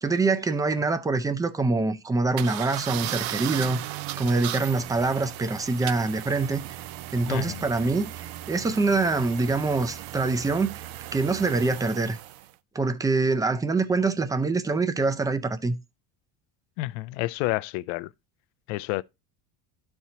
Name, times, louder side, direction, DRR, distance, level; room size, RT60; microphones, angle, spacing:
voice 1, 0.0-3.8 4.2-6.7 7.1-10.8 11.1-12.2 12.7-15.7, right 3 dB, 10° right, 0.4 m, -25 dB
sound 1, 2.4-12.5, right 15 dB, 90° right, 0.6 m, -36 dB
voice 2, 7.3-7.6 16.8-18.1 18.7-19.0, left 19 dB, 90° left, 0.5 m, -29 dB
12.0 x 4.4 x 2.8 m
cardioid pair, 140°, 45 cm